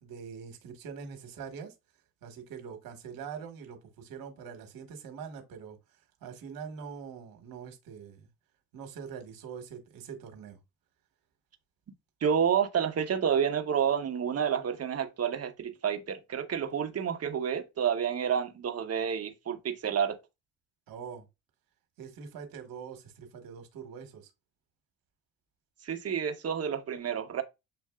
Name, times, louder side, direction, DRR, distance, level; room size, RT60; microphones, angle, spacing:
voice 1, 0.0-1.7 2.2-5.8 6.2-8.3 8.7-10.6 20.9-21.2 22.0-24.3, right 6 dB, 65° right, 1.3 m, -43 dB
voice 2, 12.2-20.2 25.8-27.4, right 8 dB, 40° right, 1.0 m, -29 dB
7.5 x 2.6 x 2.3 m
hypercardioid pair, 55°, 36 cm